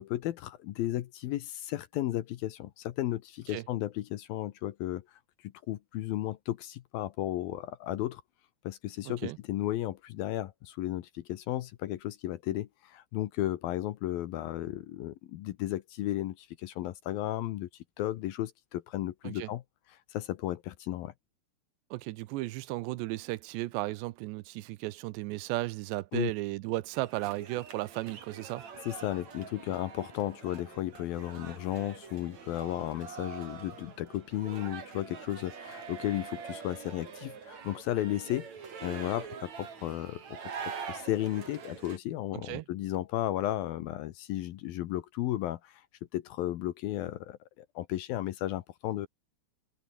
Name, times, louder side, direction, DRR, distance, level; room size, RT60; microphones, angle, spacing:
voice 1, 0.0-8.2 8.6-17.7 18.0-19.6 20.1-21.1 26.1-26.3 28.9-38.5 38.8-40.5 40.9-45.8 46.1-49.1, left 14 dB, 70° left, 2.4 m, -34 dB
voice 2, 9.1-9.4 19.2-19.5 21.9-28.7 42.3-42.7, right 19 dB, 90° right, 2.9 m, -35 dB
sound 1, 26.9-42.0, right 6 dB, 45° right, 4.0 m, -44 dB
omnidirectional pair, 5.0 m